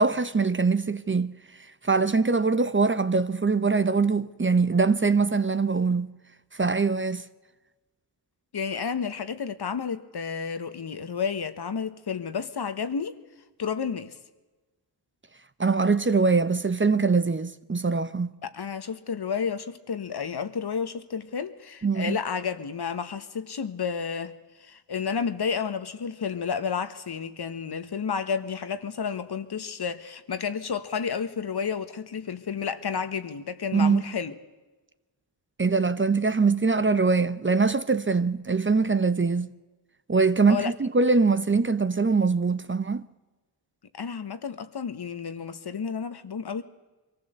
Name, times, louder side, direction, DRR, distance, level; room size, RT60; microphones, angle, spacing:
voice 1, 0.0-1.4 1.8-6.1 6.5-7.3 15.6-18.3 21.8-22.2 33.7-34.0 35.6-39.5 40.1-43.1, right 4 dB, 25° right, 0.9 m, -23 dB
voice 2, 8.5-13.1 13.6-14.1 18.5-34.3 40.5-40.7 44.0-46.6, left 6 dB, 55° left, 1.6 m, -31 dB
23.0 x 14.5 x 8.0 m
cardioid pair, 50°, 46 cm